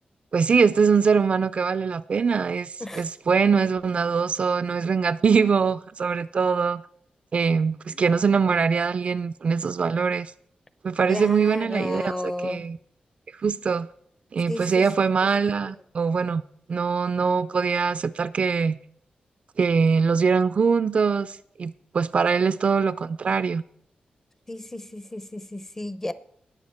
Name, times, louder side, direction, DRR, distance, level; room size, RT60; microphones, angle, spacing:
voice 1, 0.3-6.8 7.3-10.3 10.8-12.8 13.4-13.9 14.3-16.4 16.7-18.8 19.6-23.6, right 5 dB, 45° right, 0.3 m, -22 dB
voice 2, 11.1-12.7 14.5-14.8 24.5-26.1, left 1 dB, 15° left, 0.6 m, -33 dB
19.5 x 7.1 x 4.3 m
wide cardioid pair, 165°, 3 cm